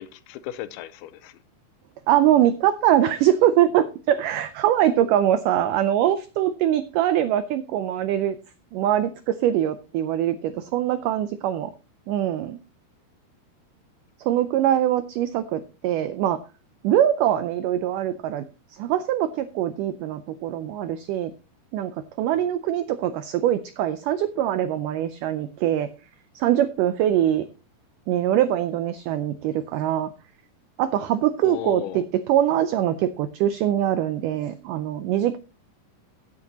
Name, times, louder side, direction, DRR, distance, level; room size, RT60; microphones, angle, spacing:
voice 1, 0.0-1.4 22.4-22.5 31.4-32.0, left 13 dB, 90° left, 2.6 m, -36 dB
voice 2, 2.1-8.4 8.7-11.7 12.1-12.6 14.2-16.4 16.8-18.4 18.8-21.3 21.7-21.9 22.2-25.9 26.4-27.5 28.1-30.1 30.8-35.4, right 11 dB, 85° right, 1.8 m, -23 dB
15.5 x 7.6 x 2.8 m
omnidirectional pair, 4.4 m